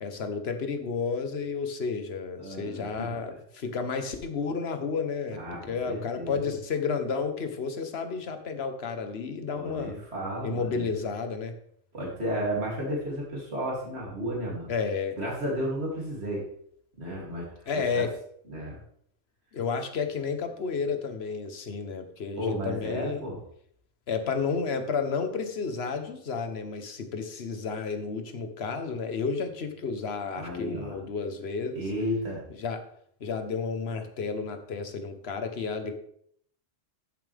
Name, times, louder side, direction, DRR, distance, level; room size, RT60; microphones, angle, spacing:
voice 1, 0.0-10.0 10.4-11.5 14.7-15.2 17.7-18.1 19.5-23.2 24.1-31.9 32.6-32.8 33.2-35.9, left 5 dB, 65° left, 7 dB, 1.4 m, -31 dB
voice 2, 2.4-3.1 5.3-6.6 9.5-10.9 11.9-14.7 15.2-16.4 17.0-18.1 18.5-18.8 22.3-23.4 30.3-31.0 31.7-32.4, equal, 65° right, -3 dB, 3.3 m, -33 dB
14.0 x 7.3 x 3.5 m, 0.66 s
omnidirectional pair, 1.2 m